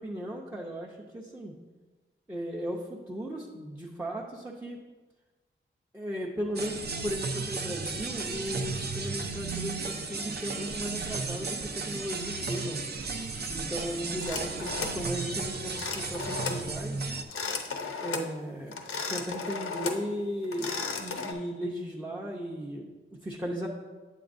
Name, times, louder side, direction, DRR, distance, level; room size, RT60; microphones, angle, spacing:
voice 1, 0.0-1.6 2.3-4.8 5.9-12.8 13.5-17.1 18.0-18.8 19.1-23.7, equal, 10° right, -3 dB, 0.6 m, -36 dB
sound 1, 6.5-17.2, right 4 dB, 50° right, 0.6 m, -34 dB
sound 2, 14.2-15.0 15.7-16.6 17.2-18.3 18.7-20.1 20.4-21.3, left 5 dB, 90° left, 0.7 m, -35 dB
8.1 x 7.9 x 2.5 m, 1.3 s
wide cardioid pair, 165°, 21 cm